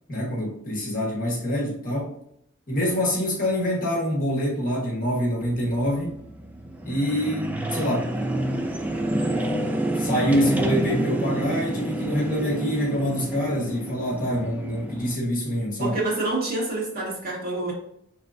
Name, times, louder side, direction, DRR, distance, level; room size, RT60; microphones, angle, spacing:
voice 1, 0.1-2.2 2.7-6.2 6.8-8.1 10.0-16.0, equal, 40° left, -2 dB, 1.4 m, -25 dB
sound 1, 5.4-15.2, right 1 dB, 10° right, 0.3 m, -29 dB
voice 2, 15.8-17.7, right 2 dB, 50° right, -3 dB, 1.5 m, -27 dB
4.9 x 3.3 x 2.6 m, 0.71 s
head